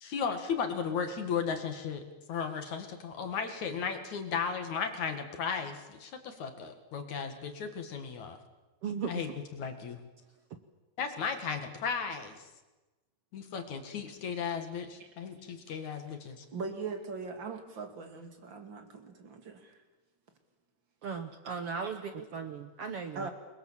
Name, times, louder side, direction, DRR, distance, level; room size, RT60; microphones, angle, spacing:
voice 1, 0.0-8.4 9.1-9.3 9.6-10.0 11.0-12.5 13.3-16.5, left 6 dB, 55° left, 7 dB, 2.9 m, -35 dB
voice 2, 8.8-9.3 21.0-23.3, right 6 dB, 75° right, 8 dB, 1.4 m, -37 dB
voice 3, 16.5-19.8 21.5-21.6 21.8-22.2 23.1-23.3, right 4 dB, 35° right, 6 dB, 2.8 m, -41 dB
28.5 x 22.0 x 7.4 m, 1.1 s
omnidirectional pair, 4.4 m